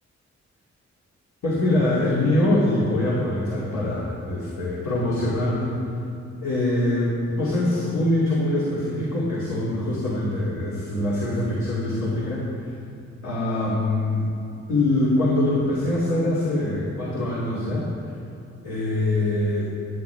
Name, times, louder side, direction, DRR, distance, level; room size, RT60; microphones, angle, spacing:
voice 1, 1.4-5.7 6.4-12.7 13.2-14.3 14.7-17.9 18.6-19.7, left 1 dB, 80° left, -8 dB, 2.6 m, -23 dB
15.0 x 11.0 x 3.4 m, 2.5 s
cardioid pair, 75°, 29 cm